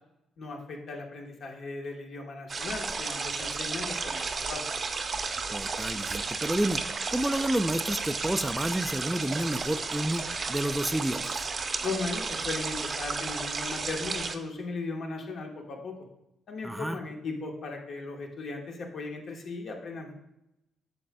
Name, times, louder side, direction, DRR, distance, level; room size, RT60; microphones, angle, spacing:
voice 1, 0.4-4.6 11.8-16.0 16.5-20.1, left 3 dB, 60° left, 2 dB, 1.3 m, -37 dB
sound 1, 2.5-14.4, right 4 dB, 40° right, 0.6 m, -33 dB
voice 2, 5.5-6.8 7.1-11.5 16.6-17.0, right 1 dB, 5° right, 11 dB, 0.3 m, -30 dB
8.6 x 6.4 x 2.3 m, 0.87 s
cardioid pair, 90°, 0 cm